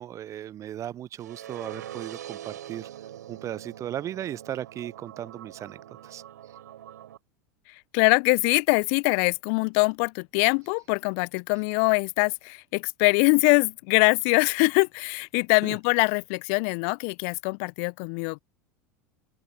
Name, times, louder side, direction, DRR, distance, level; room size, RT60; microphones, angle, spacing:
voice 1, 0.0-2.9 3.3-6.2 15.6-15.8, right 11 dB, 30° right, 0.8 m, -36 dB
sound 1, 1.2-7.2, right 11 dB, 65° right, 6.3 m, -43 dB
voice 2, 7.9-18.4, left 40 dB or more, 50° left, 0.8 m, -23 dB
open air
figure-of-eight pair, 80°, 10 cm